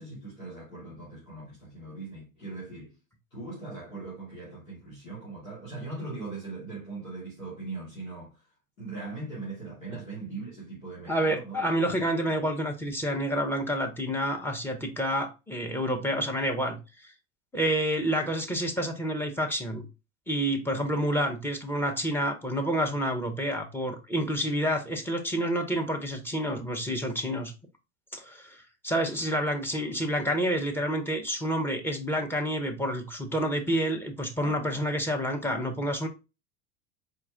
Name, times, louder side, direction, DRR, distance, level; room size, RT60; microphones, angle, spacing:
voice 1, 0.0-3.0 3.3-8.5 8.8-11.6 11.9-12.7 34.4-34.8, right 3 dB, 90° left, 1.9 m, -40 dB
voice 2, 11.1-16.8 17.5-19.9 20.3-27.5 28.1-36.1, equal, 5° left, 0.7 m, -29 dB
4.3 x 2.3 x 3.6 m
figure-of-eight pair, 80°, 40 cm